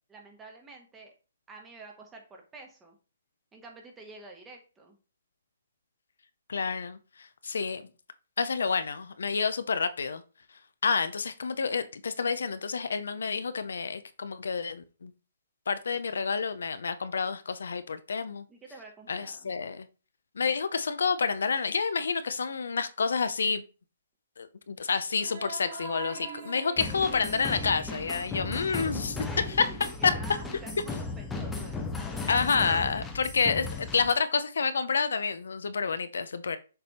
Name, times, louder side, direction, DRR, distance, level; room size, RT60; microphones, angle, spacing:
voice 1, 0.1-1.1 1.5-3.0 3.5-5.0 18.5-19.5 28.9-32.1, right 3 dB, 10° right, 1.3 m, -49 dB
voice 2, 6.5-7.8 8.4-10.2 10.8-15.1 15.7-18.5 19.1-19.9 20.4-23.6 24.4-29.7 30.0-30.1 32.3-36.6, left 5 dB, 80° left, 0.6 m, -29 dB
sound 1, 25.1-29.9, right 4 dB, 45° right, 2.5 m, -44 dB
sound 2, 26.8-34.1, left 3 dB, 10° left, 0.7 m, -36 dB
6.7 x 3.4 x 4.2 m
hypercardioid pair, 150°, 0 cm